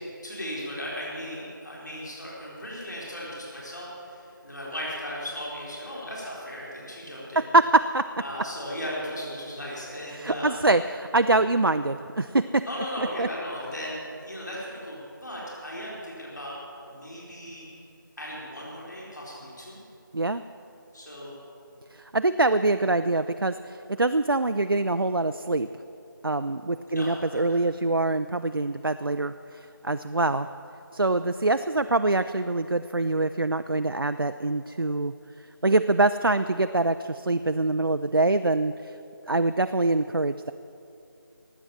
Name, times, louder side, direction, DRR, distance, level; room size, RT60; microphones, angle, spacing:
voice 1, 0.2-7.5 8.2-10.6 12.7-16.6 16.9-17.7 18.2-19.8 20.9-21.4 26.9-27.6, equal, 55° left, -5 dB, 4.1 m, -36 dB
voice 2, 7.4-8.0 10.1-12.7 13.0-13.3 20.1-20.4 21.9-25.7 26.2-30.5 30.9-35.1 35.6-38.9 39.3-40.5, right 2 dB, 85° right, 10 dB, 0.5 m, -24 dB
18.5 x 7.9 x 7.2 m, 2.7 s
figure-of-eight pair, 170°, 12 cm